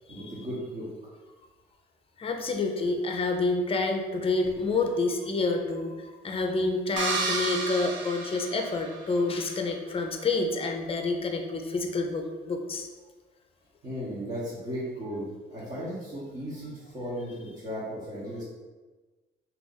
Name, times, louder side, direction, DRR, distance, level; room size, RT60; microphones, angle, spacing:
voice 1, 0.1-1.1 13.8-15.3 15.5-18.4, equal, 40° right, -9 dB, 1.1 m, -36 dB
voice 2, 2.2-12.9, left 3 dB, 30° left, 3 dB, 0.5 m, -28 dB
sound 1, 7.0-9.2, right 3 dB, 70° right, 0.6 m, -31 dB
2.8 x 2.5 x 3.9 m, 1.3 s
cardioid pair, 90°, 20 cm